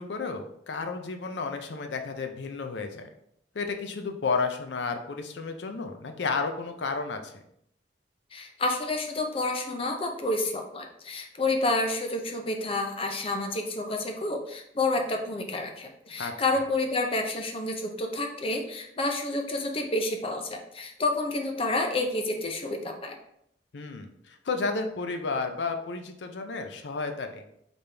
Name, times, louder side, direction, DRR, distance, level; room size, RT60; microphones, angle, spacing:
voice 1, 0.0-3.1 3.5-7.4 16.2-16.4 23.7-27.5, left 4 dB, 80° left, 6 dB, 0.6 m, -32 dB
voice 2, 8.3-23.1, left 2 dB, 30° left, 3 dB, 0.6 m, -29 dB
4.1 x 3.5 x 3.4 m, 0.73 s
head